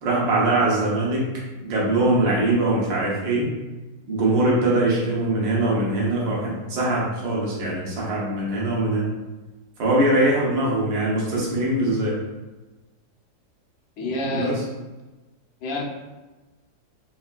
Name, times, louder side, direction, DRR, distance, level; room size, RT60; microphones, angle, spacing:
voice 1, 0.0-1.3 1.6-3.5 4.1-9.1 9.8-12.2 14.0-14.6, right 2 dB, 75° right, -5 dB, 1.5 m, -22 dB
voice 2, 14.0-14.6 15.6-15.8, left 2 dB, 85° left, -2 dB, 1.4 m, -27 dB
4.2 x 2.4 x 2.2 m, 1.1 s
omnidirectional pair, 2.1 m